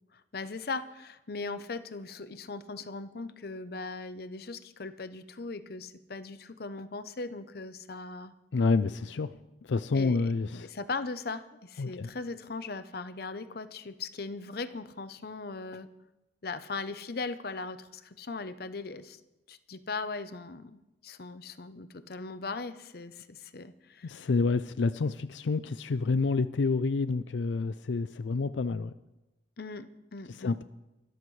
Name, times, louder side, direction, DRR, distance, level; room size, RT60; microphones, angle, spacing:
voice 1, 0.1-8.3 9.9-10.3 10.6-15.9 16.4-19.2 19.5-24.3 29.6-30.6, left 3 dB, 60° left, 12 dB, 0.7 m, -39 dB
voice 2, 8.5-10.7 11.8-12.1 24.0-28.9 30.3-30.6, left 4 dB, 90° left, 14 dB, 0.4 m, -28 dB
24.5 x 13.0 x 3.2 m, 0.98 s
head